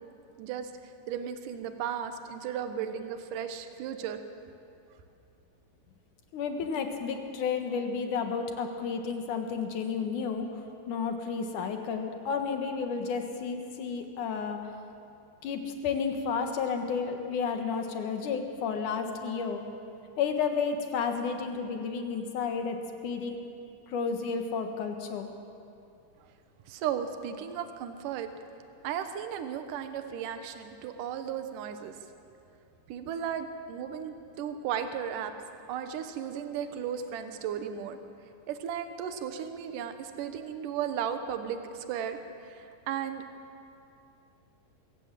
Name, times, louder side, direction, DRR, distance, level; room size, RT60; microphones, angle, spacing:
voice 1, 0.4-0.7 1.1-4.2 26.7-28.3 28.8-31.9 32.9-35.3 35.7-38.0 38.5-43.2, right 8 dB, 65° right, 8 dB, 2.4 m, -35 dB
voice 2, 6.3-14.6 15.4-19.6 20.2-23.4 23.9-25.3, left 5 dB, 60° left, 5 dB, 2.6 m, -32 dB
23.5 x 16.5 x 7.5 m, 2.6 s
omnidirectional pair, 4.5 m